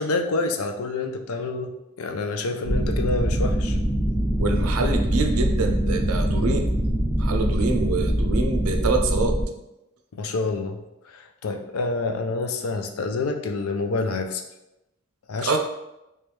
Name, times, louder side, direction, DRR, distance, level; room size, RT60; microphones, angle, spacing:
voice 1, 0.0-1.7 2.0-3.8 10.2-10.8 11.1-14.4 15.3-15.6, left 3 dB, 80° left, 6 dB, 0.5 m, -27 dB
sound 1, 2.6-9.4, equal, 5° right, 0.7 m, -23 dB
voice 2, 4.4-6.7 7.2-9.4 15.4-15.6, right 3 dB, 85° right, 4 dB, 0.5 m, -25 dB
3.3 x 3.1 x 3.2 m, 0.93 s
head